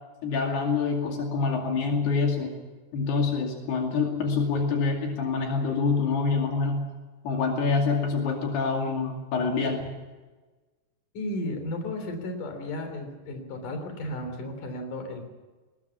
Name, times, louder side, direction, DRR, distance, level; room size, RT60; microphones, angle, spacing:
voice 1, 0.2-2.5 2.9-6.8 7.2-9.9, left 4 dB, 75° left, 1 dB, 4.6 m, -26 dB
voice 2, 11.1-15.3, left 1 dB, 55° left, 6 dB, 4.8 m, -34 dB
22.0 x 20.5 x 7.2 m, 1.3 s
omnidirectional pair, 4.7 m